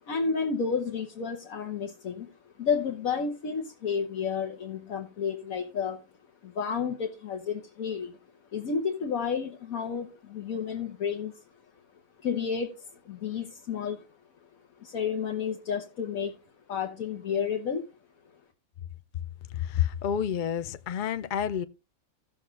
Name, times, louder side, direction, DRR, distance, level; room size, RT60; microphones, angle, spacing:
voice 1, 0.0-6.0 6.4-8.2 8.5-11.4 12.2-14.0 14.8-16.3 16.7-17.9, left 6 dB, 80° left, 1.5 m, -31 dB
voice 2, 19.5-21.6, left 9 dB, 65° left, 0.5 m, -29 dB
16.5 x 7.0 x 2.5 m
omnidirectional pair, 1.4 m